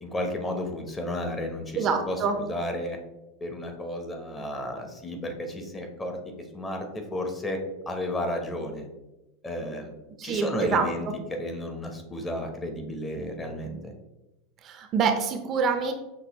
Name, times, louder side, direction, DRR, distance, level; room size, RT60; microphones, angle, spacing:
voice 1, 0.0-3.0 3.4-6.2 6.5-7.6 7.9-8.9 9.4-9.9 10.2-13.9, left 1 dB, 20° left, 4 dB, 0.8 m, -33 dB
voice 2, 1.7-2.4 10.2-11.1 14.6-15.9, right 5 dB, 40° right, 6 dB, 0.5 m, -26 dB
6.0 x 2.6 x 2.9 m, 1.0 s
supercardioid pair, 115°, 0 cm